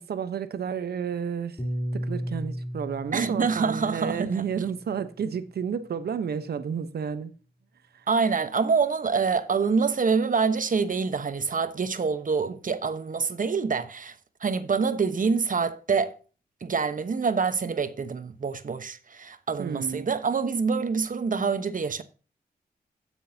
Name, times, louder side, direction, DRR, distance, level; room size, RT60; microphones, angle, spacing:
voice 1, 0.0-1.6 1.9-7.3 7.9-8.1 19.6-20.1, right 7 dB, 85° right, 1.0 m, -31 dB
Piano, 1.6-6.0, equal, 30° left, 3.1 m, -36 dB
voice 2, 3.1-4.4 8.1-14.1 14.4-16.1 16.6-22.0, right 5 dB, 55° right, 1.1 m, -26 dB
15.5 x 6.3 x 2.8 m
cardioid pair, 50°, 16 cm